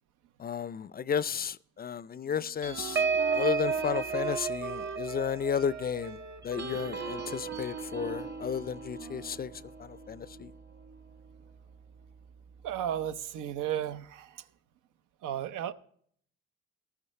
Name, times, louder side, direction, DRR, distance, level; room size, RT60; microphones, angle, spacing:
voice 1, 0.4-3.1 3.3-10.5, left 7 dB, 30° left, 0.4 m, -33 dB
Wind instrument woodwind instrument, 2.2-9.5, right 7 dB, 60° right, 1.0 m, -43 dB
sound 1, 2.6-11.5 12.0-12.2 12.5-12.8, right 5 dB, 35° right, 1.1 m, -35 dB
voice 2, 12.6-14.4 15.2-15.7, right 10 dB, 85° right, 0.7 m, -34 dB
14.0 x 13.0 x 3.2 m
cardioid pair, 90°, 30 cm